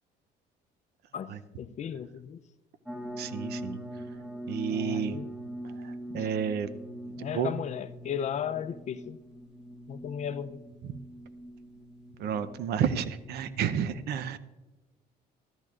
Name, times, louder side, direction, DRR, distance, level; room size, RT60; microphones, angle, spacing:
voice 1, 1.1-2.4 4.7-5.3 6.1-6.3 7.2-9.2 9.9-10.6, left 8 dB, 45° left, 0.5 m, -35 dB
sound 1, 2.9-13.8, equal, 5° right, 1.0 m, -42 dB
voice 2, 3.2-3.8 4.5-5.2 5.6-6.7 7.1-7.5 12.2-14.4, right 8 dB, 75° right, 0.7 m, -31 dB
13.5 x 13.0 x 2.4 m
cardioid pair, 110°, 17 cm